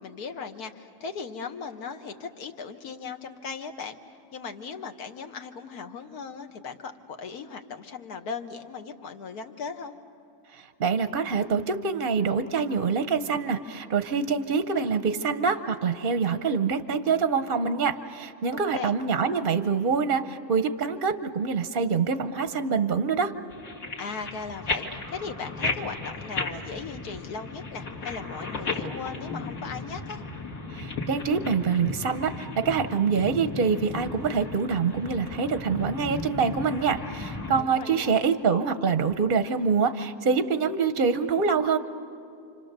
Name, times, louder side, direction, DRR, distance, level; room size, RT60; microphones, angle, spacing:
voice 1, 0.0-4.0 4.3-10.0 18.5-18.9 24.0-30.2 37.6-38.2, left 5 dB, 85° left, 6 dB, 1.7 m, -38 dB
voice 2, 10.5-23.3 30.7-41.8, right 5 dB, 50° right, 10 dB, 0.7 m, -25 dB
sound 1, 23.5-37.6, left 3 dB, 65° left, 2.2 m, -35 dB
29.5 x 26.0 x 6.7 m, 2.5 s
omnidirectional pair, 1.6 m